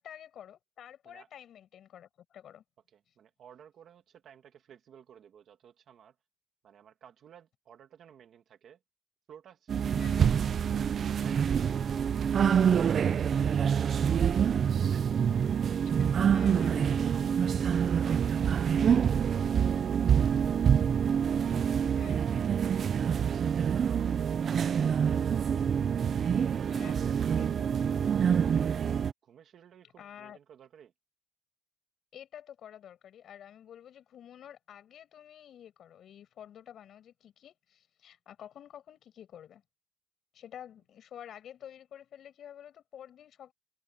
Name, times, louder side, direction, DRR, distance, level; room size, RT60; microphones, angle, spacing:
voice 1, 0.0-2.6 10.0-10.3 16.0-17.2 22.0-22.2 26.7-27.0 27.4-27.6 30.0-30.4 32.1-39.6 40.3-43.5, left 10 dB, 85° left, 7.1 m, -49 dB
voice 2, 2.9-6.2 6.6-8.8 9.3-10.5 11.0-12.1 12.5-13.2 13.5-14.5 14.9-15.2 18.7-20.7 21.3-21.7 21.9-25.4 26.3-27.1 29.2-30.9, right 8 dB, 75° right, 1.8 m, -56 dB
Yoga lesson, 9.7-29.1, right 7 dB, 55° right, 0.3 m, -26 dB
wide cardioid pair, 165°, 0 cm